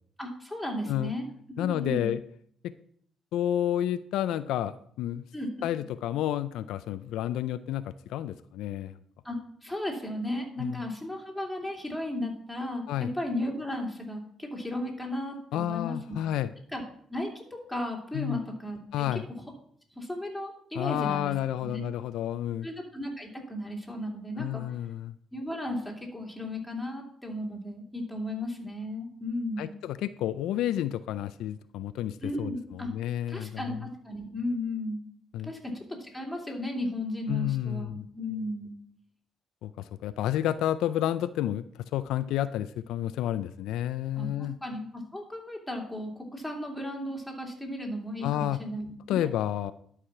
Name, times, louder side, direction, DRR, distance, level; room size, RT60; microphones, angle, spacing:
voice 1, 0.2-1.3 1.6-2.1 5.3-5.5 9.2-9.4 9.6-16.2 16.7-16.8 17.1-19.2 19.9-21.3 21.6-21.9 22.6-24.8 25.3-29.7 32.2-32.9 33.3-35.0 35.4-35.6 35.9-38.7 44.2-44.3 44.6-49.3, left 1 dB, 5° left, 0 dB, 2.7 m, -35 dB
voice 2, 1.6-2.2 3.3-5.2 5.6-9.0 10.6-10.8 12.9-13.1 15.5-16.5 18.1-18.4 18.9-19.2 20.7-22.7 24.4-25.1 29.6-33.9 35.3-35.5 37.3-38.1 39.6-44.6 48.2-48.6 49.1-49.7, left 12 dB, 90° left, 13 dB, 0.4 m, -30 dB
11.5 x 4.8 x 5.9 m, 0.64 s
cardioid pair, 90°, 0 cm